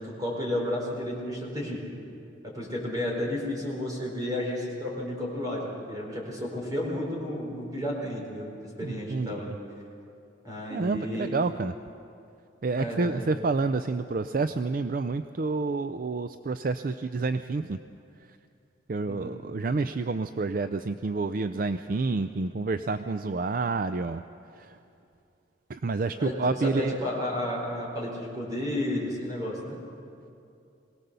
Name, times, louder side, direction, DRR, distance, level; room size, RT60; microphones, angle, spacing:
voice 1, 0.0-1.8 2.4-9.6 10.4-11.4 12.8-13.3 19.1-19.3 26.2-29.8, left 1 dB, 20° right, -2 dB, 4.5 m, -32 dB
voice 2, 8.8-9.5 10.7-11.7 12.6-17.8 18.9-24.2 24.5-24.8 25.7-27.0, right 3 dB, 45° right, 10 dB, 0.4 m, -29 dB
22.5 x 18.0 x 6.8 m, 2.6 s
head